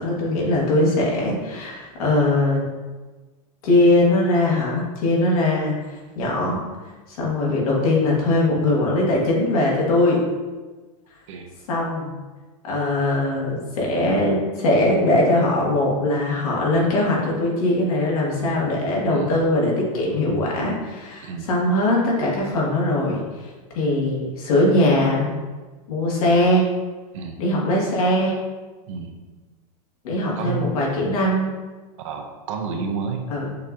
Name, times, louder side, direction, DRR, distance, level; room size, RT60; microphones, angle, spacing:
voice 1, 0.0-2.7 3.6-5.7 6.1-6.6 7.1-10.2 11.7-12.1 12.6-23.2 23.7-25.4 25.9-26.7 27.4-28.3 30.0-31.5 33.3-33.5, left 1 dB, 70° left, -3 dB, 1.5 m, -21 dB
voice 2, 32.0-33.2, right 6 dB, 55° right, 4 dB, 0.6 m, -30 dB
6.5 x 2.7 x 2.4 m, 1.3 s
supercardioid pair, 170°, 19 cm